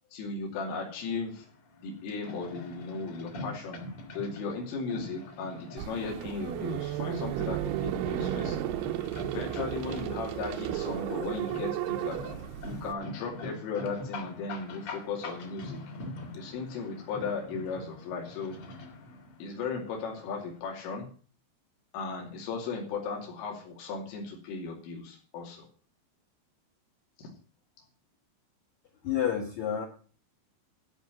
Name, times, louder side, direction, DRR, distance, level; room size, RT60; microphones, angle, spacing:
voice 1, 0.1-1.5 1.8-3.8 4.2-8.6 9.3-12.2 12.6-15.8 16.4-18.6 19.4-21.1 21.9-25.7 27.2-27.3, left 4 dB, 85° left, -1 dB, 5.2 m, -36 dB
sound 1, 0.8-20.6, left 2 dB, 45° left, 2.4 m, -45 dB
sound 2, 5.8-12.9, right 12 dB, 80° right, 2.5 m, -33 dB
voice 2, 29.0-29.8, left 9 dB, 65° left, 0 dB, 1.9 m, -29 dB
13.5 x 5.3 x 7.4 m, 0.40 s
omnidirectional pair, 5.7 m